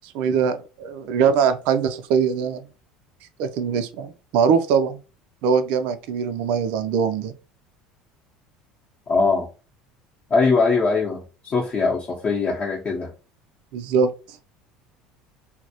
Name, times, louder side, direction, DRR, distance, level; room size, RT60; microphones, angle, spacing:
voice 1, 0.0-2.6 3.4-5.0 5.4-7.3 13.7-14.1, right 6 dB, 70° right, 0.4 m, -22 dB
voice 2, 9.1-9.5 10.3-13.1, left 4 dB, 40° left, 0.7 m, -21 dB
2.2 x 2.0 x 2.7 m
hypercardioid pair, 85°, 2 cm